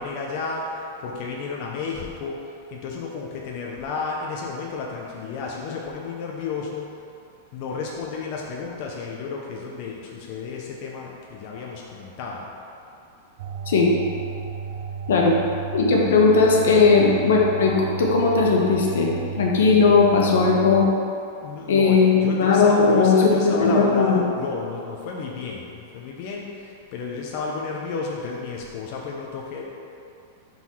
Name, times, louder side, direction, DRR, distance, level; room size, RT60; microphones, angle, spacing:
voice 1, 0.0-6.9 7.5-12.5 21.4-29.6, left 4 dB, 35° left, -2 dB, 0.5 m, -32 dB
sound 1, 13.4-20.9, right 6 dB, 45° right, 0.3 m, -33 dB
voice 2, 15.7-19.1 19.4-20.9 21.7-24.2, left 4 dB, 85° left, -2 dB, 1.1 m, -18 dB
4.6 x 3.9 x 5.5 m, 2.6 s
supercardioid pair, 175°, 0 cm